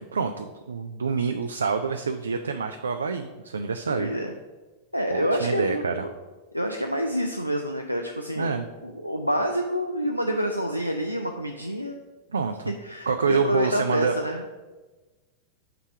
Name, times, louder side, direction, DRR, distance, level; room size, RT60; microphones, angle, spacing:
voice 1, 0.1-4.1 5.1-6.0 8.4-8.7 12.3-12.7 13.1-14.5, right 5 dB, 70° right, 8 dB, 0.3 m, -27 dB
voice 2, 3.9-4.3 4.9-6.1 6.5-8.6 8.8-12.0 12.7-14.4, equal, 90° left, 3 dB, 0.4 m, -27 dB
5.7 x 3.4 x 5.8 m, 1.2 s
figure-of-eight pair, 90°, 0 cm